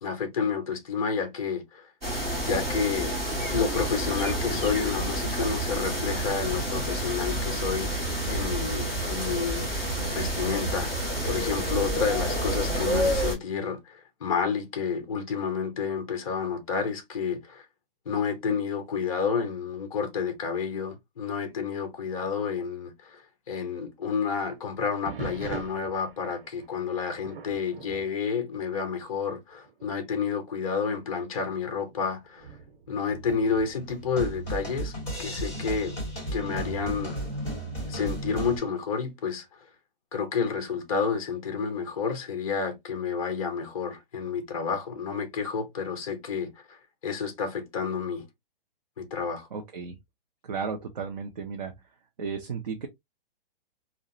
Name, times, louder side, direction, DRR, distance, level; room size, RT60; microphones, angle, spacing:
voice 1, 0.0-1.9 2.4-3.1 3.5-9.6 10.1-17.6 18.1-23.2 23.5-32.5 32.9-34.9 35.2-36.0 36.3-37.2 37.9-39.4 40.1-46.8 47.0-48.3 49.0-49.5, left 6 dB, 35° left, 0.6 m, -30 dB
sound 1, 2.0-13.3, right 1 dB, 10° right, 0.8 m, -29 dB
sound 2, 25.0-29.2 29.5-29.9 30.5-30.6 31.3-34.0 35.9-36.4, right 5 dB, 75° right, 1.0 m, -43 dB
sound 3, 33.1-38.6, right 1 dB, 15° left, 1.6 m, -34 dB
voice 2, 49.5-50.0 50.4-51.7 52.2-52.9, right 5 dB, 45° right, 0.5 m, -34 dB
2.7 x 2.0 x 2.5 m
hypercardioid pair, 175°, 29 cm